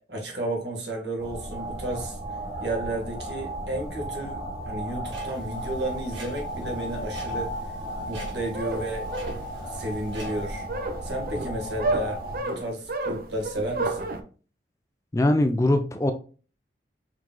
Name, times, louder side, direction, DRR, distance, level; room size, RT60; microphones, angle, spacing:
voice 1, 0.1-2.2 2.6-7.5 8.1-9.1 9.7-10.7 11.0-14.1, right 1 dB, 70° right, 1 dB, 1.4 m, -32 dB
sound 1, 1.2-12.4, right 1 dB, 35° right, 1.0 m, -35 dB
Clock, 5.1-10.6, right 2 dB, 90° right, 1.8 m, -46 dB
sound 2, 8.2-14.2, right 2 dB, 50° right, 0.5 m, -31 dB
voice 2, 15.1-16.1, left 1 dB, 15° left, 7 dB, 0.3 m, -21 dB
4.7 x 3.6 x 2.2 m, 0.37 s
head